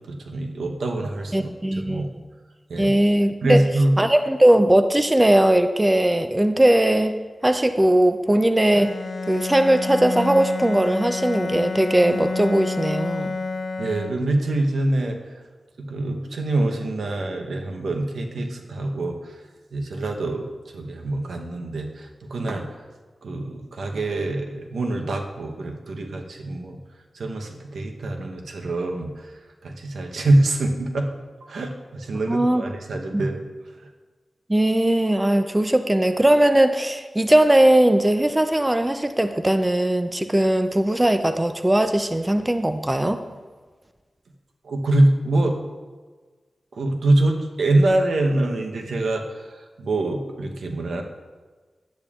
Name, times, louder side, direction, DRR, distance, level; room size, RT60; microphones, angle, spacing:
voice 1, 0.0-1.5 1.8-2.1 2.7-2.9 3.4-4.0 13.8-15.3 15.8-19.3 19.7-22.8 23.2-26.8 27.1-29.3 29.6-31.1 31.4-33.4 33.7-33.9 44.6-45.6 46.7-51.0, right 2 dB, 90° right, 2 dB, 0.8 m, -24 dB
voice 2, 1.3-2.0 2.8-3.6 4.0-7.2 7.4-8.9 9.3-13.4 32.3-32.6 33.1-33.2 34.5-43.2, right 1 dB, 15° right, 8 dB, 0.4 m, -19 dB
Bowed string instrument, 8.7-14.5, left 3 dB, 55° left, 0.4 m, -29 dB
10.5 x 8.7 x 2.4 m, 1.4 s
wide cardioid pair, 90°, 0 cm